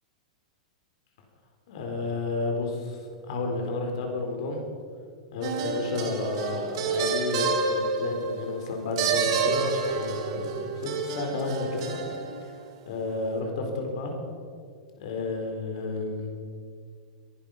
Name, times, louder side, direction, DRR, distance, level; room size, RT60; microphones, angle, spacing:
voice 1, 1.7-4.6 5.3-12.0 12.9-14.2 15.0-16.3, left 3 dB, 60° left, 3 dB, 4.1 m, -31 dB
sound 1, 5.4-12.4, right 5 dB, 55° right, 2.2 m, -29 dB
22.0 x 11.0 x 5.8 m, 2.2 s
figure-of-eight pair, 100°, 3 cm